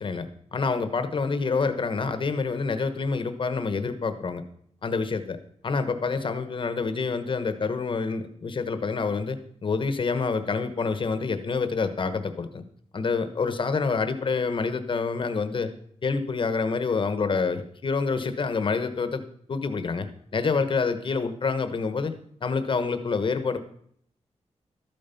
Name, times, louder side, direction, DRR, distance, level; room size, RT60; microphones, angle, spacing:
voice 1, 0.0-4.4 4.8-5.4 5.6-12.6 12.9-15.7 16.0-19.2 19.5-22.1 22.4-23.6, left 4 dB, 45° left, 10 dB, 1.1 m, -27 dB
13.0 x 9.0 x 5.7 m, 0.64 s
wide cardioid pair, 175°, 12 cm